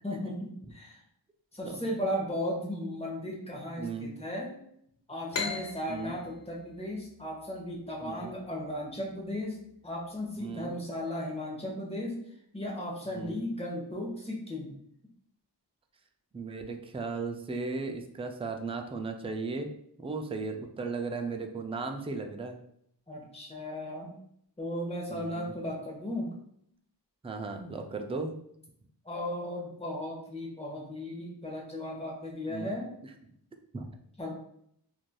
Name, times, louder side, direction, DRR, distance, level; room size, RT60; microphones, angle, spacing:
voice 1, 0.0-1.0 1.5-4.6 5.1-12.2 12.5-14.8 23.1-24.1 24.6-26.3 29.0-32.9 34.2-34.3, left 1 dB, 15° left, -2 dB, 0.9 m, -36 dB
voice 2, 3.8-4.1 5.9-6.1 8.0-8.3 10.4-10.7 13.1-13.4 16.3-19.7 20.0-22.6 25.1-25.5 27.2-28.3 32.5-32.7 33.7-33.8, right 4 dB, 15° right, 4 dB, 0.3 m, -36 dB
sound 1, 5.3-8.7, left 4 dB, 75° left, 0.6 m, -39 dB
3.0 x 2.6 x 2.2 m, 0.69 s
wide cardioid pair, 45°, 44 cm